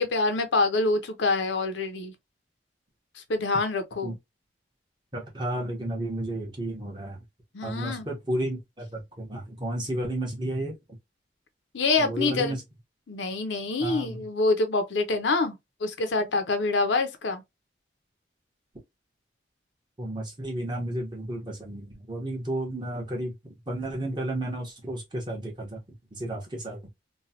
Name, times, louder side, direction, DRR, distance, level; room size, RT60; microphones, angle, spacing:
voice 1, 0.0-2.1 3.2-4.2 7.5-8.1 11.7-12.6 13.1-17.4, left 3 dB, 80° left, 0.6 m, -26 dB
voice 2, 5.1-7.2 7.6-10.8 12.0-12.6 13.8-14.2 20.0-25.8 26.1-26.9, right 1 dB, 25° right, 1.0 m, -32 dB
3.0 x 2.2 x 2.7 m
head